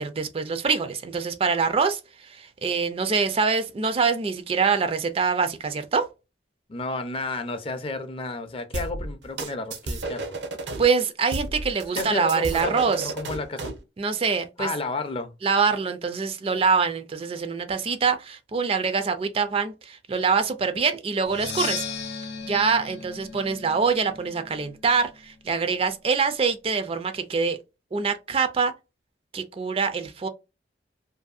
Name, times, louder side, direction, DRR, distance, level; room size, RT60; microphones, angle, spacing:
voice 1, 0.0-6.1 10.8-13.1 14.0-14.7 15.4-21.9 22.4-27.6 27.9-28.7 29.3-30.3, right 5 dB, 35° right, 0.4 m, -24 dB
voice 2, 6.7-10.4 11.9-13.7 14.6-15.3, left 3 dB, 30° left, 0.5 m, -32 dB
sound 1, 8.7-10.8 11.3-13.8, right 2 dB, 75° right, 0.6 m, -32 dB
Percussion, 21.3-25.0, left 6 dB, 80° left, 0.6 m, -36 dB
2.6 x 2.5 x 2.4 m
head